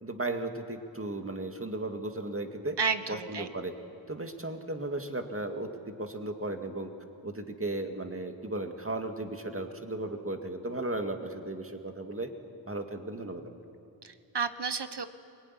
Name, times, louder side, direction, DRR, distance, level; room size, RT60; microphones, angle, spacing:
voice 1, 0.0-2.8 3.1-3.7 4.1-5.7 6.0-6.9 7.2-12.3 12.6-13.4, right 2 dB, 25° right, 5 dB, 2.1 m, -35 dB
voice 2, 2.8-3.5 14.0-15.1, right 5 dB, 55° right, 10 dB, 1.3 m, -31 dB
23.5 x 21.0 x 10.0 m, 2.6 s
wide cardioid pair, 85°, 48 cm